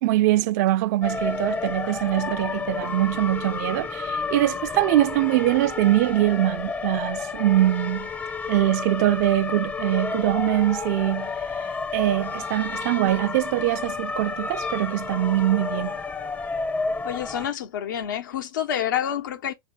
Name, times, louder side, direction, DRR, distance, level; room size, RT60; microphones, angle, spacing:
voice 1, 0.0-8.1 8.5-11.3 11.9-16.0, right 15 dB, 55° right, 0.6 m, -23 dB
Fire truck siren. Alicante - Spain, 1.0-17.5, left 4 dB, 15° left, 0.7 m, -31 dB
voice 2, 17.0-19.5, left 10 dB, 70° left, 1.2 m, -28 dB
4.0 x 3.1 x 3.8 m
hypercardioid pair, 115°, 11 cm